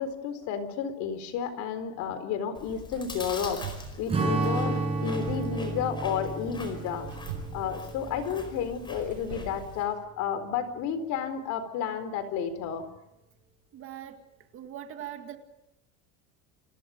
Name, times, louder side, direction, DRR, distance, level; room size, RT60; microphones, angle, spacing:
voice 1, 0.0-3.6 4.0-7.1 7.5-12.9, left 7 dB, 40° left, 4.3 m, -32 dB
Chewing mastication, 2.5-9.8, left 2 dB, 10° left, 4.8 m, -44 dB
sound 1, 2.6-10.0, right 7 dB, 90° right, 7.7 m, -45 dB
Strum, 4.1-8.8, right 3 dB, 15° right, 7.5 m, -31 dB
voice 2, 13.7-14.2 14.5-15.4, right 11 dB, 30° right, 2.0 m, -41 dB
30.0 x 28.5 x 5.2 m
cardioid pair, 180°, 43 cm